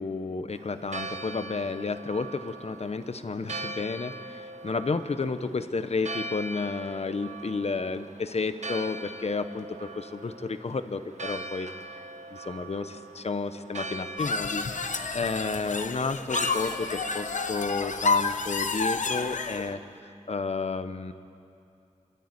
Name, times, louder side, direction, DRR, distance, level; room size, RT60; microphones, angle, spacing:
voice 1, 0.0-11.7 12.4-14.7 15.1-19.8 20.3-21.1, left 4 dB, 55° left, 10 dB, 1.0 m, -31 dB
Church bell, 0.5-20.0, right 2 dB, 65° right, 1.1 m, -41 dB
sound 1, 14.2-19.7, left 4 dB, 80° left, 0.9 m, -29 dB
27.0 x 12.5 x 9.4 m, 2.6 s
wide cardioid pair, 95°, 13 cm